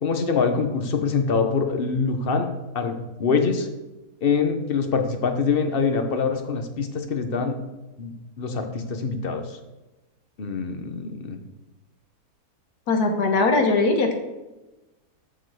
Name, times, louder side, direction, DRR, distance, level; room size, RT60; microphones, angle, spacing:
voice 1, 0.0-2.5 2.7-3.7 4.2-7.6 8.0-9.4 10.4-11.4, left 5 dB, 40° left, 6 dB, 1.1 m, -24 dB
voice 2, 12.9-14.1, left 3 dB, 70° left, 4 dB, 1.7 m, -20 dB
13.5 x 4.6 x 4.8 m, 1.1 s
omnidirectional pair, 1.7 m